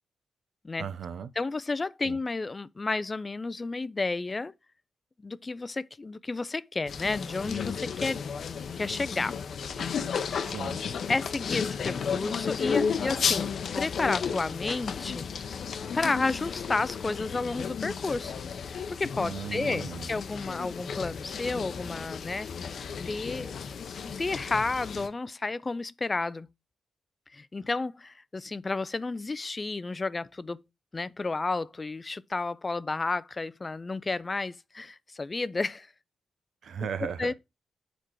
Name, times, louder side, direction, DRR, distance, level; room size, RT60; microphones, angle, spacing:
voice 1, 0.8-1.3 2.0-2.2 10.4-10.8 19.2-20.1 36.6-37.3, right 7 dB, 70° right, 0.8 m, -36 dB
voice 2, 1.4-4.5 5.2-8.2 8.8-9.4 9.8-10.4 11.1-13.5 13.8-15.3 15.9-18.3 18.6-22.5 23.0-23.6 24.0-26.5 27.3-30.6 30.9-35.9 37.0-37.3, left 3 dB, 35° left, 0.4 m, -31 dB
sound 1, 6.9-25.1, left 6 dB, 65° left, 0.7 m, -33 dB
6.7 x 4.5 x 4.5 m
supercardioid pair, 50°, 0 cm